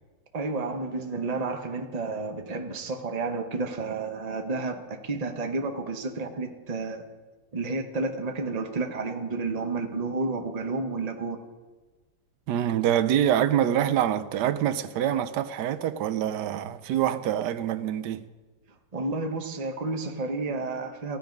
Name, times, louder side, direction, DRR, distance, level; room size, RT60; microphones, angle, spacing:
voice 1, 0.3-7.0 7.5-11.4 18.9-21.2, right 3 dB, 25° right, 1.0 m, -31 dB
voice 2, 12.5-18.3, right 10 dB, 75° right, 1.3 m, -25 dB
15.5 x 11.5 x 5.2 m
omnidirectional pair, 1.9 m